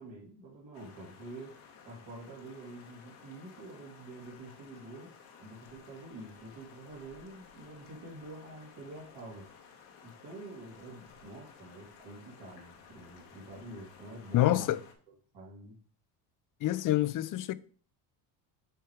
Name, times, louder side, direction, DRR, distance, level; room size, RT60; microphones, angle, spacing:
voice 1, 0.0-1.6 1.8-9.5 10.0-14.7 15.1-15.8, right 2 dB, 60° right, 2.6 m, -47 dB
sound 1, 0.7-14.9, left 6 dB, 90° left, 1.6 m, -55 dB
voice 2, 14.3-14.8 16.6-17.5, left 14 dB, 45° left, 0.5 m, -27 dB
7.8 x 3.3 x 4.8 m
supercardioid pair, 90°, 48 cm